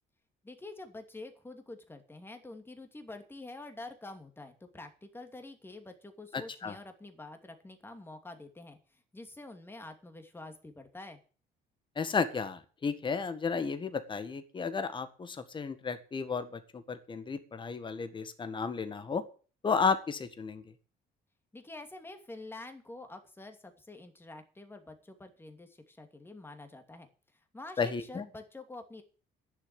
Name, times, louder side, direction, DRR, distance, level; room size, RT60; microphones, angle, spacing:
voice 1, 0.4-11.2 21.5-27.1 27.5-29.0, left 2 dB, 15° left, 6 dB, 2.6 m, -47 dB
voice 2, 6.3-6.8 12.0-19.2 19.6-20.6 27.8-28.3, left 5 dB, 30° left, 10 dB, 1.8 m, -33 dB
11.0 x 7.4 x 9.8 m, 0.38 s
cardioid pair, 110°, 17 cm